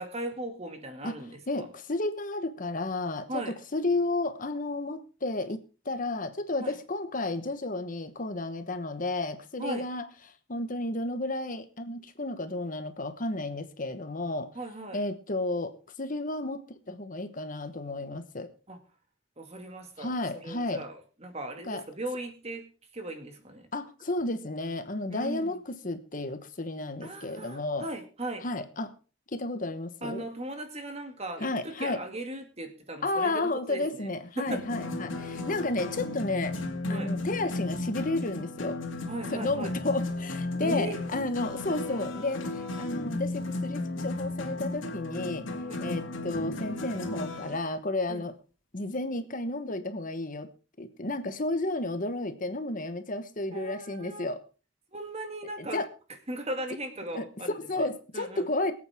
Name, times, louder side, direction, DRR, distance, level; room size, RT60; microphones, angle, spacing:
voice 1, 0.0-1.7 3.3-3.5 6.6-6.8 9.6-9.8 14.5-15.0 18.7-18.8 19.4-22.6 22.9-23.7 25.1-25.6 27.0-28.5 30.0-34.1 34.4-34.9 36.9-37.1 39.1-39.7 40.6-41.0 45.7-45.8 48.1-48.3 53.5-54.3 54.9-55.8 56.3-57.9 58.1-58.4, right 1 dB, 35° right, 6 dB, 2.2 m, -38 dB
voice 2, 1.5-3.4 3.7-5.6 5.8-10.1 10.5-14.5 14.9-15.7 16.0-18.5 20.0-20.8 21.6-21.8 23.7-27.9 28.4-28.9 29.3-30.2 31.4-32.0 33.0-36.6 36.9-38.8 39.3-45.4 45.8-48.3 48.7-50.5 50.8-54.4 55.6-55.9 57.1-57.2 57.7-58.7, left 2 dB, 45° left, 9 dB, 1.2 m, -32 dB
sound 1, 34.5-47.6, left 2 dB, 80° left, 2.5 m, -34 dB
23.5 x 8.6 x 3.6 m, 0.36 s
head